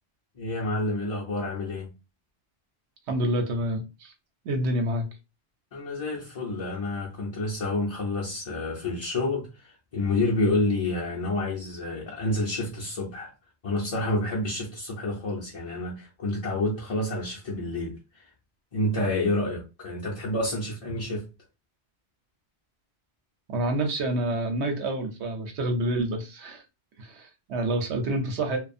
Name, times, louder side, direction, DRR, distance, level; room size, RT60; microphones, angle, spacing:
voice 1, 0.4-1.9 5.7-13.3 13.6-18.2 18.7-21.3, left 2 dB, 40° left, 0.6 m, -29 dB
voice 2, 3.1-4.1 4.4-5.1 23.5-26.6 27.0-28.6, right 1 dB, 80° right, 0.9 m, -28 dB
2.4 x 2.3 x 2.5 m
omnidirectional pair, 1.1 m